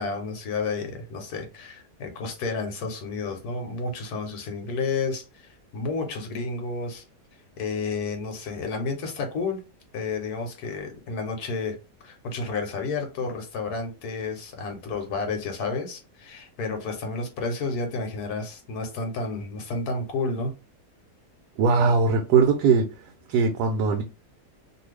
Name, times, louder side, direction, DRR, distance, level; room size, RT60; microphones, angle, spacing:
voice 1, 0.0-7.0 7.6-9.6 9.9-11.8 12.0-20.5, left 4 dB, 80° left, 1.2 m, -31 dB
voice 2, 21.6-22.9 23.3-24.0, right 5 dB, 90° right, 1.1 m, -20 dB
2.7 x 2.5 x 3.2 m
omnidirectional pair, 1.7 m